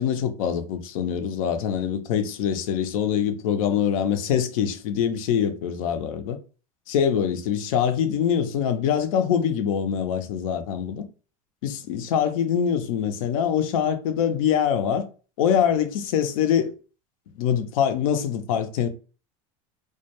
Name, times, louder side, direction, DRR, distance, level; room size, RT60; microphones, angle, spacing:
voice 1, 0.0-6.4 6.9-11.0 11.6-15.1 15.4-16.7 17.4-18.9, left 8 dB, 80° left, 0.5 m, -24 dB
2.2 x 2.1 x 2.8 m
supercardioid pair, 115°, 18 cm